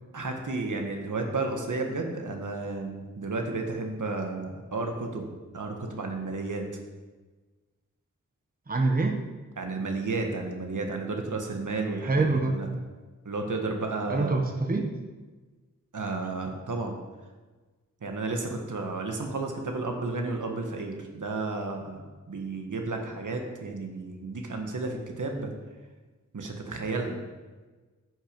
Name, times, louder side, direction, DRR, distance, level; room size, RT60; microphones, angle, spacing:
voice 1, 0.1-6.7 9.6-12.7 13.2-14.4 15.9-17.0 18.0-25.5 26.3-27.2, right 3 dB, 75° right, 3 dB, 1.5 m, -32 dB
voice 2, 8.7-9.2 12.0-12.6 14.1-15.0, right 3 dB, 30° right, 4 dB, 1.0 m, -25 dB
9.7 x 6.3 x 5.2 m, 1.3 s
wide cardioid pair, 75°, 31 cm